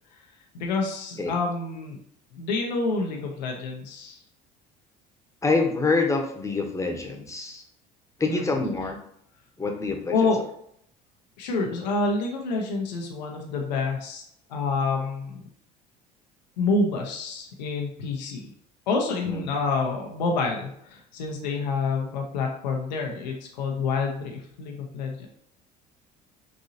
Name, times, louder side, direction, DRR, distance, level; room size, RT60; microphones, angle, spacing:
voice 1, 0.5-2.0 2.3-4.2 8.3-8.5 10.1-10.4 11.4-14.2 14.5-15.5 16.6-18.5 18.9-25.3, left 3 dB, 90° left, 1 dB, 0.6 m, -28 dB
voice 2, 5.4-7.6 8.2-9.0 9.6-10.3 19.3-19.5, left 3 dB, 15° left, 2 dB, 0.8 m, -26 dB
3.9 x 2.7 x 2.7 m, 0.69 s
hypercardioid pair, 65°, 21 cm